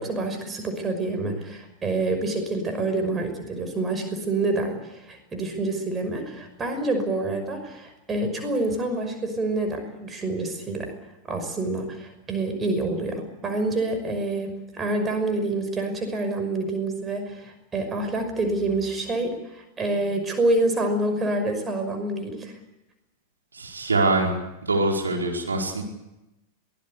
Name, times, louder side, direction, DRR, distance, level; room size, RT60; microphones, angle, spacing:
voice 1, 0.0-10.9 11.3-22.6, right 2 dB, 20° right, 6 dB, 5.7 m, -27 dB
voice 2, 23.5-24.4 24.6-25.8, right 2 dB, 75° right, 1 dB, 4.8 m, -23 dB
23.0 x 19.5 x 8.5 m, 0.94 s
figure-of-eight pair, 90°, 0 cm